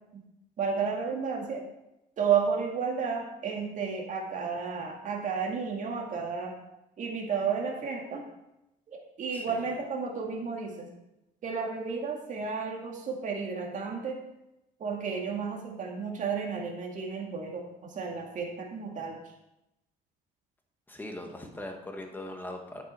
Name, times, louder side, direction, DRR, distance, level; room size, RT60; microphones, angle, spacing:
voice 1, 0.6-1.6 2.2-6.5 7.0-8.2 8.9-10.9 11.4-14.2 14.8-19.2, right 6 dB, 50° right, 0 dB, 2.2 m, -32 dB
voice 2, 9.3-9.6 20.9-22.8, left 1 dB, 10° left, 3 dB, 1.7 m, -40 dB
9.8 x 7.7 x 4.5 m, 0.89 s
cardioid pair, 110°, 17 cm